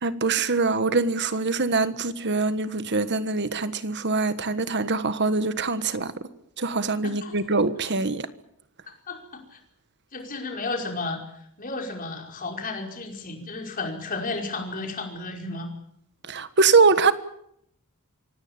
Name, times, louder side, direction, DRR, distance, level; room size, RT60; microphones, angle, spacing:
voice 1, 0.0-6.1 6.6-8.3 16.3-17.1, right 4 dB, 55° right, 1.5 m, -23 dB
voice 2, 7.0-7.3 8.9-9.6 10.1-11.2 11.6-15.7, left 3 dB, 40° left, 5.3 m, -33 dB
25.0 x 17.5 x 8.8 m
head